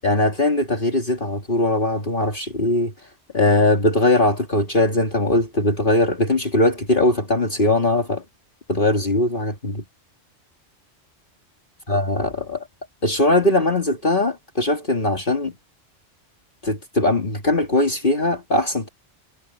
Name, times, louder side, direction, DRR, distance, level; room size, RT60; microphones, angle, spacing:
voice 1, 0.0-2.9 3.3-8.2 8.7-9.8 11.9-12.6 13.0-15.5 16.6-18.9, left 1 dB, 45° left, 2.6 m, -20 dB
omnidirectional pair, 1.2 m